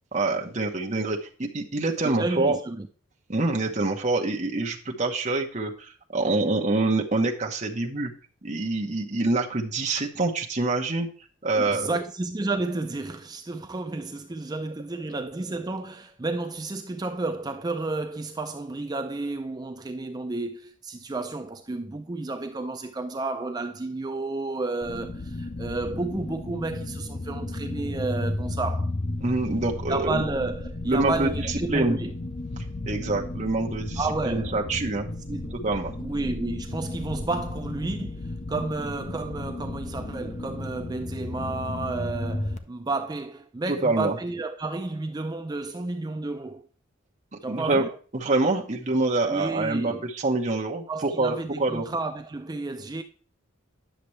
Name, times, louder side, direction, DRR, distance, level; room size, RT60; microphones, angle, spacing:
voice 1, 0.1-2.6 3.3-8.1 8.4-11.1 11.4-11.9 29.2-30.2 30.8-32.0 32.8-34.0 34.3-35.1 35.5-35.9 43.7-44.1 47.5-47.8 48.1-51.9, right 2 dB, 35° right, 1.1 m, -26 dB
voice 2, 2.0-2.9 11.6-28.9 29.9-32.1 34.0-34.6 35.3-35.5 36.0-46.7 47.4-47.9 49.3-50.0 50.9-53.0, right 3 dB, 20° right, 0.4 m, -31 dB
sound 1, 24.8-42.6, left 2 dB, 35° left, 0.7 m, -33 dB
10.0 x 6.7 x 3.2 m
head